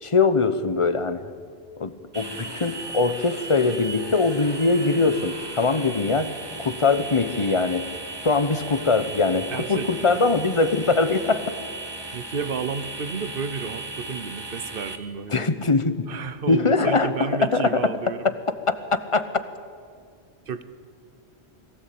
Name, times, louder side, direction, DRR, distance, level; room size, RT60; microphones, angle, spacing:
voice 1, 0.0-1.3 1.8-6.3 6.6-7.9 8.2-11.5 15.3-16.1 16.5-17.9 19.1-19.2, left 3 dB, 30° left, 12 dB, 1.0 m, -22 dB
sound 1, 2.1-15.0, right 2 dB, 25° right, 1.7 m, -36 dB
voice 2, 9.5-10.2 12.1-15.5 16.1-18.3 20.5-20.6, right 6 dB, 60° right, 12 dB, 1.2 m, -32 dB
22.5 x 16.5 x 8.6 m, 2.1 s
omnidirectional pair, 1.1 m